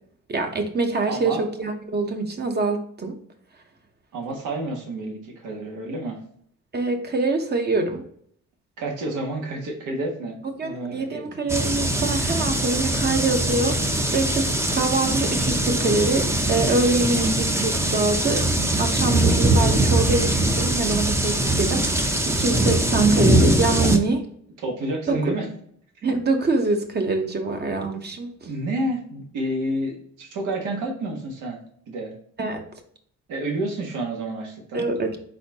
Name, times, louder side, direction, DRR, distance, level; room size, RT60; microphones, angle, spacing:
voice 1, 0.3-3.2 6.7-8.0 10.4-18.5 18.8-24.2 25.1-25.3 26.0-28.5 32.4-32.6 34.7-35.2, right 3 dB, 35° right, 5 dB, 0.9 m, -24 dB
voice 2, 1.1-1.4 4.1-6.2 8.8-11.4 23.8-23.9 24.6-25.5 28.4-31.6 31.9-32.1 33.3-34.9, right 1 dB, 85° right, 1 dB, 1.5 m, -29 dB
sound 1, 11.5-24.0, right 1 dB, 10° right, 0.6 m, -22 dB
4.2 x 3.9 x 2.8 m, 0.62 s
cardioid pair, 90°, 30 cm